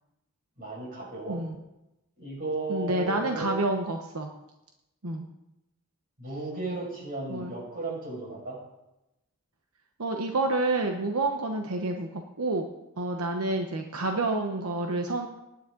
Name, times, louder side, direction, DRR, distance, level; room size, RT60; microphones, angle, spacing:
voice 1, 0.6-1.4 2.2-3.6 6.2-8.6, right 2 dB, 45° right, -2 dB, 5.7 m, -35 dB
voice 2, 2.7-4.3 5.0-5.3 7.3-7.5 10.0-12.7 13.0-15.3, right 2 dB, 80° right, 3 dB, 1.1 m, -28 dB
19.5 x 10.0 x 3.9 m, 0.94 s
head